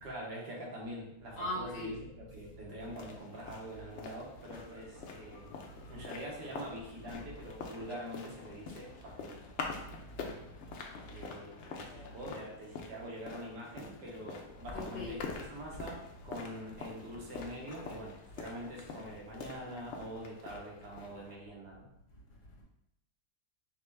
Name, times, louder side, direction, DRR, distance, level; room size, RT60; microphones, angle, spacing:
voice 1, 0.0-5.5 5.9-9.4 11.1-21.9, equal, 90° right, -2 dB, 1.6 m, -45 dB
voice 2, 1.4-2.0 5.8-5.9 10.0-10.1 11.0-11.1 14.7-15.1, left 1 dB, 85° left, -3 dB, 1.8 m, -39 dB
sound 1, 2.8-21.4, left 4 dB, 65° left, 0.7 m, -46 dB
5.6 x 2.2 x 3.3 m, 0.81 s
omnidirectional pair, 1.7 m